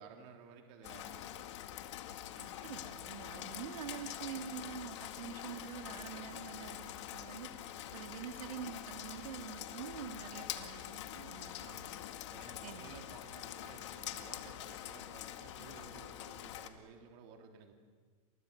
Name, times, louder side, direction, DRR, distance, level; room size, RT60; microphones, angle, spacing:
voice 1, 0.0-1.5 3.2-3.4 11.6-17.7, right 6 dB, 35° right, 4 dB, 3.2 m, -56 dB
Rain, 0.8-16.7, left 12 dB, 55° left, 2.0 m, -45 dB
voice 2, 2.4-7.5 7.9-11.6 12.6-13.0, right 9 dB, 90° right, 5 dB, 2.7 m, -46 dB
sound 1, 9.7-9.8 10.1-10.4 12.5-12.6 12.9-13.1, right 9 dB, 65° right, 6.6 m, -63 dB
28.5 x 27.5 x 6.8 m, 1.5 s
supercardioid pair, 175°, 18 cm